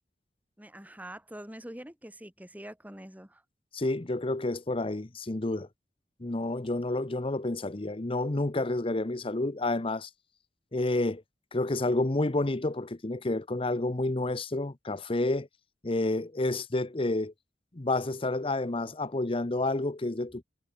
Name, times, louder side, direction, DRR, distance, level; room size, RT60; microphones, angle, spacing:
voice 1, 0.6-3.4, right 1 dB, 10° right, 3.6 m, -45 dB
voice 2, 3.7-5.7 6.2-10.1 10.7-11.2 11.5-15.5 15.8-17.3 17.7-20.4, left 2 dB, 30° left, 0.8 m, -29 dB
head